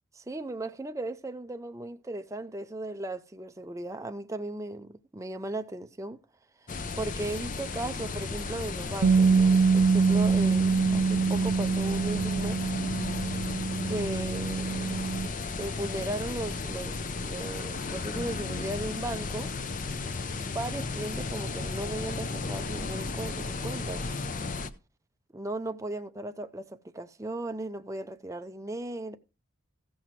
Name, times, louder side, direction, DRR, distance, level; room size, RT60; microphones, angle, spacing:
voice 1, 0.1-6.2 6.6-6.7 7.0-12.6 12.9-13.0 13.9-15.3 15.6-19.5 20.0-24.0 25.3-29.2, right 2 dB, 15° right, 0.5 m, -37 dB
sound 1, 6.7-24.7, left 3 dB, 35° left, 0.6 m, -34 dB
Bass guitar, 9.0-15.3, right 5 dB, 70° right, 0.5 m, -25 dB
15.0 x 5.8 x 4.6 m
head